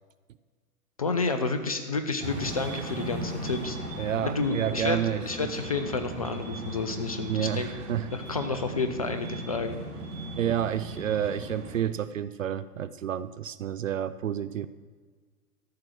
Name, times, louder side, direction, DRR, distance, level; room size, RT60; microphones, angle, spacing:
voice 1, 1.0-3.8 4.2-7.7 8.1-9.8, left 4 dB, 25° left, 8 dB, 0.4 m, -30 dB
sound 1, 2.2-11.8, right 1 dB, 30° right, 3.0 m, -37 dB
voice 2, 4.0-5.2 7.3-8.1 10.4-14.7, right 10 dB, 55° right, 15 dB, 0.5 m, -29 dB
13.0 x 6.0 x 7.6 m, 1.5 s
figure-of-eight pair, 120°, 46 cm